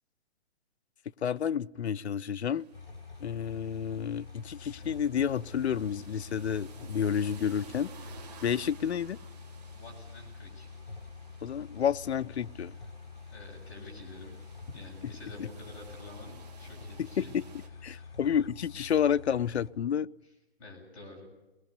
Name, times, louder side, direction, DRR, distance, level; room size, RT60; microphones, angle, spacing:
voice 1, 1.2-2.7 3.2-7.9 8.4-9.2 11.4-12.7 17.0-17.4 17.8-20.1, left 8 dB, 85° left, 14 dB, 0.7 m, -30 dB
sound 1, 2.4-17.7, right 5 dB, 40° right, 2.5 m, -55 dB
sound 2, 2.7-19.7, left 4 dB, 65° left, 4.5 m, -47 dB
voice 2, 9.8-10.7 12.8-12.9 13.3-17.3 17.9-18.2 20.6-21.3, left 2 dB, 30° left, -3 dB, 6.9 m, -48 dB
23.5 x 21.0 x 6.8 m, 1.1 s
hypercardioid pair, 175°, 32 cm